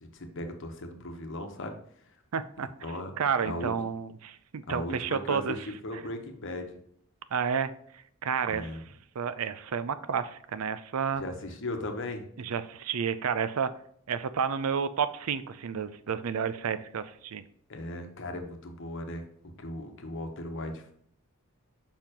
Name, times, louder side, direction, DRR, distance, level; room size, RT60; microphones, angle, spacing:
voice 1, 0.0-1.8 2.8-3.1 3.4-3.7 4.7-5.6 5.8-6.8 8.5-8.8 11.2-12.2 17.7-19.2 19.6-20.9, left 1 dB, 60° left, 5 dB, 1.0 m, -37 dB
voice 2, 2.3-2.7 3.2-5.6 7.3-7.7 8.2-8.8 9.2-11.2 12.4-13.7 14.1-17.4, right 6 dB, 85° right, 13 dB, 0.5 m, -30 dB
6.7 x 5.5 x 3.0 m, 0.65 s
head